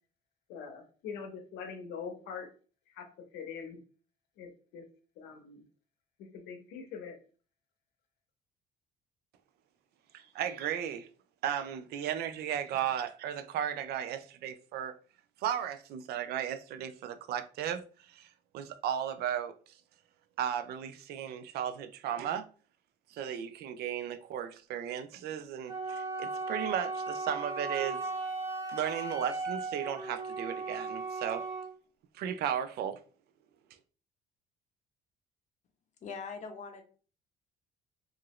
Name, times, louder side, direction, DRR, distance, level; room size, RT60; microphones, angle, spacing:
voice 1, 0.5-2.5 2.9-3.1 3.3-3.8 4.4-4.9 5.2-5.6 6.2-7.2, left 6 dB, 85° left, 0.7 m, -43 dB
voice 2, 10.1-11.1 11.4-14.9 15.4-18.3 18.5-19.5 20.4-22.5 23.1-28.0 28.7-31.5 32.1-33.0, right 9 dB, 70° right, 0.4 m, -35 dB
Wind instrument woodwind instrument, 25.7-31.7, right 3 dB, 30° right, 1.4 m, -37 dB
voice 3, 36.0-36.8, left 5 dB, 45° left, 0.7 m, -41 dB
2.8 x 2.5 x 3.0 m
cardioid pair, 110°, 17 cm